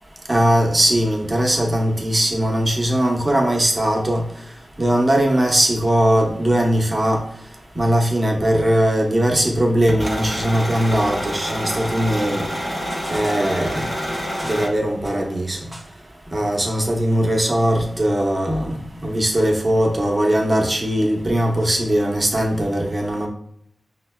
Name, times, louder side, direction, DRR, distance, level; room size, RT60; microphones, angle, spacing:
voice 1, 0.3-4.2 4.8-7.2 7.8-12.4 13.1-13.9 14.4-15.6 16.3-18.7 19.0-23.3, right 1 dB, 25° right, -1 dB, 0.8 m, -19 dB
sound 1, 9.9-14.7, equal, 40° left, 0.9 m, -27 dB
5.6 x 2.1 x 2.2 m, 0.70 s
wide cardioid pair, 70°, 0 cm